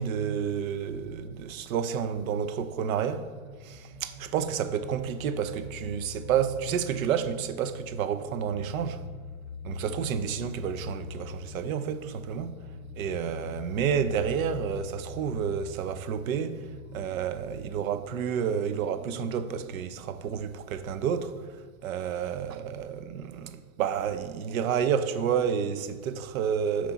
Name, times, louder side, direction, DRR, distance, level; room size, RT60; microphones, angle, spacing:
voice 1, 0.0-3.3 3.6-9.0 9.6-12.6 13.0-26.9, right 8 dB, 75° right, 0.6 m, -30 dB
sound 1, 3.0-17.0, left 5 dB, 15° left, 0.3 m, -43 dB
5.9 x 4.7 x 4.0 m
supercardioid pair, 160°, 43 cm